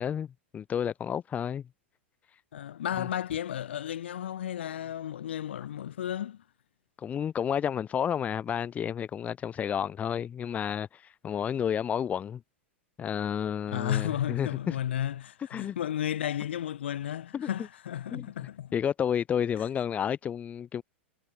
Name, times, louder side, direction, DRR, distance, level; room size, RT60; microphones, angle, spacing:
voice 1, 0.0-1.7 3.0-3.1 7.0-12.4 13.0-14.8 15.5-15.8 17.3-17.5 18.1-18.3 18.7-20.8, left 8 dB, 20° left, 0.8 m, -31 dB
voice 2, 2.5-6.4 13.7-18.7, left 10 dB, 65° left, 0.7 m, -33 dB
figure-of-eight pair, 95°, 7 cm